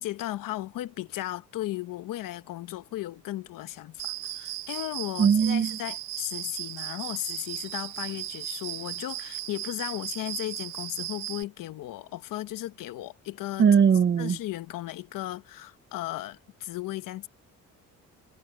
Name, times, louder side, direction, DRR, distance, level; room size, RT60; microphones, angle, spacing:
voice 1, 0.0-13.7 14.2-17.3, left 15 dB, 80° left, 1.1 m, -35 dB
Cricket, 4.0-11.4, right 14 dB, 85° right, 1.8 m, -36 dB
voice 2, 5.2-5.8 13.6-14.4, right 7 dB, 35° right, 0.7 m, -20 dB
cardioid pair, 100°, 32 cm